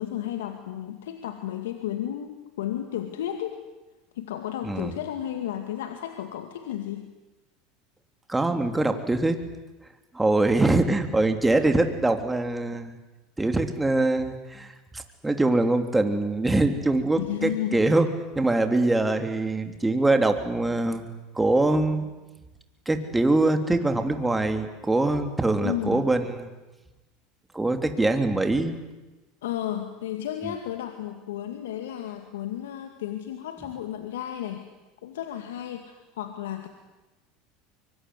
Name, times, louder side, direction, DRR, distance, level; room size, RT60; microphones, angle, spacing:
voice 1, 0.0-3.6 4.1-7.1 17.1-17.8 25.6-26.1 29.4-34.6 35.0-36.7, left 11 dB, 85° left, 6 dB, 2.2 m, -33 dB
voice 2, 4.6-4.9 8.3-9.4 10.1-13.0 13.4-18.1 18.3-22.1 22.8-26.5 27.5-28.7 30.4-30.5, right 2 dB, 10° right, 6 dB, 3.3 m, -23 dB
24.5 x 23.5 x 9.8 m, 1.1 s
hypercardioid pair, 95°, 0 cm